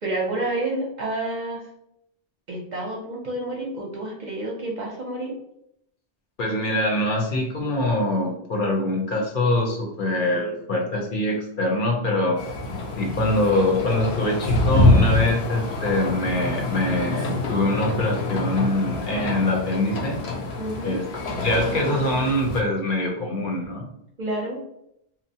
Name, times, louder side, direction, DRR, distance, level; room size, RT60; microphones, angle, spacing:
voice 1, 0.0-1.6 2.5-5.3 20.6-21.0 24.2-24.6, right 2 dB, 55° right, -2 dB, 0.6 m, -29 dB
voice 2, 6.4-12.4 13.0-20.2 20.8-21.0 21.4-23.9, left 1 dB, 60° left, 0 dB, 0.7 m, -24 dB
sound 1, 12.4-22.6, left 2 dB, 85° left, 0.9 m, -25 dB
2.7 x 2.0 x 2.7 m, 0.77 s
omnidirectional pair, 1.1 m